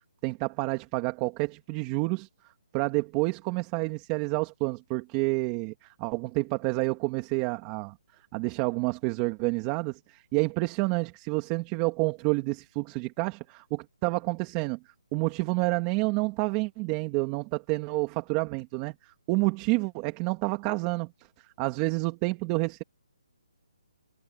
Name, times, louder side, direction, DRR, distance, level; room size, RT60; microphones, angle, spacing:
voice 1, 0.2-2.3 2.7-8.0 8.3-14.8 15.1-21.1 21.4-22.8, right 24 dB, 20° right, 2.5 m, -29 dB
hypercardioid pair, 165°, 3 cm